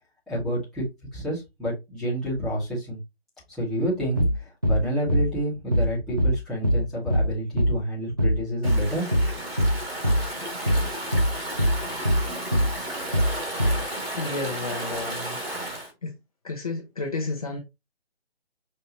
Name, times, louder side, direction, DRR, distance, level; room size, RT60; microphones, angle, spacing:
voice 1, 0.3-0.8 1.1-3.0 3.6-9.1, right 1 dB, ahead, 1.1 m, -29 dB
sound 1, 4.2-4.4 4.6-4.8 5.1-5.3 5.7-5.9 6.2-6.4 6.6-6.8 7.1-7.3 7.6-7.8 8.2-8.4 8.6-8.8 9.1-9.3 9.6-9.8 10.0-10.2 10.7-10.9 11.1-11.3 11.6-11.8 12.0-12.2 12.5-12.7 13.1-13.3 13.6-13.8, equal, 20° right, 0.4 m, -21 dB
Stream / Ocean, 8.6-15.9, right 1 dB, 65° right, 2.6 m, -33 dB
voice 2, 14.2-15.4 16.0-16.2 16.4-17.6, left 3 dB, 35° left, 0.7 m, -31 dB
5.4 x 2.8 x 2.9 m
figure-of-eight pair, 150°, 32 cm